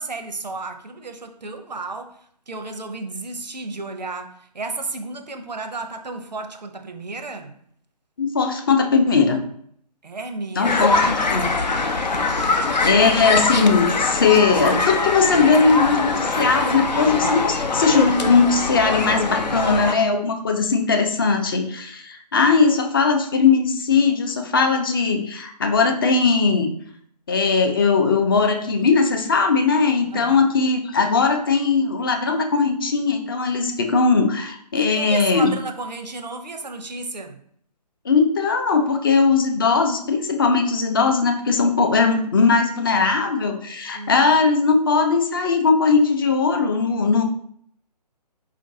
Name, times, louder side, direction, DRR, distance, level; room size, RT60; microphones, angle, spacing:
voice 1, 0.0-7.6 10.0-11.3 12.6-13.0 30.1-30.5 34.8-37.4 43.9-44.2, right 3 dB, 85° right, 7 dB, 0.6 m, -33 dB
voice 2, 8.2-9.4 10.6-11.5 12.8-26.7 27.3-35.6 38.0-47.2, left 4 dB, 35° left, 5 dB, 0.4 m, -19 dB
sound 1, 10.6-19.9, left 3 dB, 85° left, 0.5 m, -23 dB
4.6 x 2.5 x 2.6 m, 0.64 s
figure-of-eight pair, 140°, 21 cm